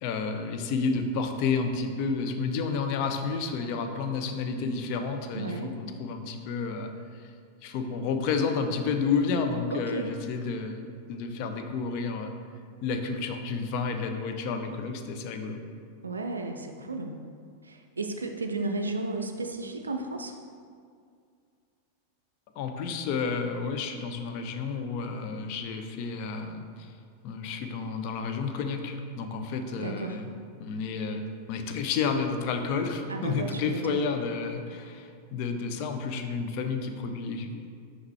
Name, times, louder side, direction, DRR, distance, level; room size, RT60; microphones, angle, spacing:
voice 1, 0.0-7.3 7.6-12.3 12.8-15.6 22.6-26.9 27.2-30.3 30.6-37.7, left 5 dB, 45° left, 5 dB, 0.5 m, -31 dB
voice 2, 5.3-5.7 9.7-10.1 16.0-17.2 17.6-20.4 29.8-30.2 33.1-34.1, right 3 dB, 75° right, 4 dB, 0.3 m, -33 dB
5.8 x 5.3 x 3.2 m, 2.2 s
figure-of-eight pair, 90°, 0 cm